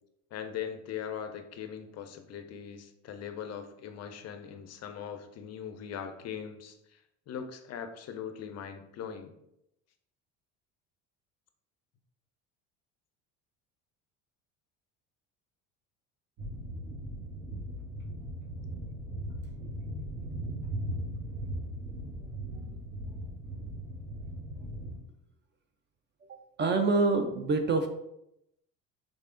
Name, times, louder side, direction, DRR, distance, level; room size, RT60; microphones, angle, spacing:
voice 1, 0.3-7.0 7.3-9.3, left 8 dB, 45° left, 8 dB, 0.5 m, -40 dB
sound 1, 16.4-25.0, right 1 dB, 60° right, 1.3 m, -38 dB
voice 2, 26.3-27.9, right 3 dB, 30° right, 6 dB, 0.5 m, -27 dB
3.7 x 3.3 x 2.5 m, 0.81 s
supercardioid pair, 80°, 38 cm